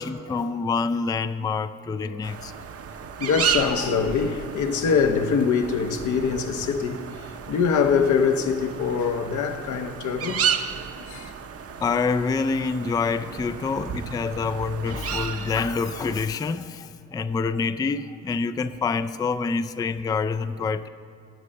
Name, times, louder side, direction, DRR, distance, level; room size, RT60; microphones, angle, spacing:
voice 1, 0.0-2.5 11.8-20.9, left 4 dB, 15° left, 0.3 m, -26 dB
sound 1, 2.2-16.3, right 7 dB, 50° right, 0.8 m, -33 dB
voice 2, 3.2-10.4 10.7-11.3, left 6 dB, 75° left, 1.0 m, -24 dB
15.5 x 7.4 x 6.5 m
cardioid pair, 90°, 30 cm